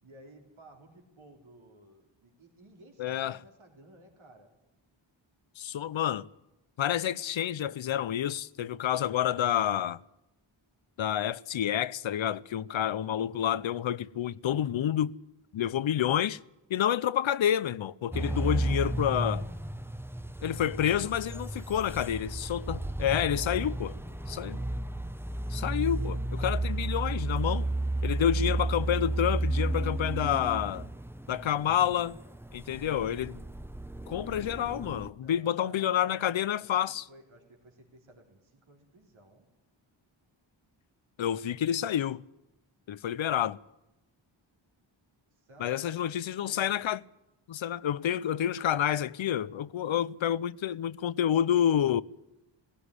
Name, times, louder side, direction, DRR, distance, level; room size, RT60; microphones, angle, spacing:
voice 1, 0.0-4.5 18.3-19.0 20.5-21.0 21.3-22.0 23.5-24.7 35.1-39.5 45.3-46.9, right 1 dB, 85° right, 3.7 m, -55 dB
voice 2, 3.0-3.4 5.6-6.3 6.8-10.0 11.0-15.1 15.5-16.4 16.7-19.5 20.4-23.9 24.3-24.6 25.5-27.7 28.0-30.9 31.3-32.2 32.5-33.4 34.1-37.0 41.2-42.2 42.9-43.6 45.6-47.0 47.5-52.0, left 10 dB, 75° left, 0.7 m, -29 dB
sound 1, 18.1-35.1, right 2 dB, 5° right, 0.9 m, -33 dB
16.5 x 16.5 x 9.8 m
cardioid pair, 65°, 47 cm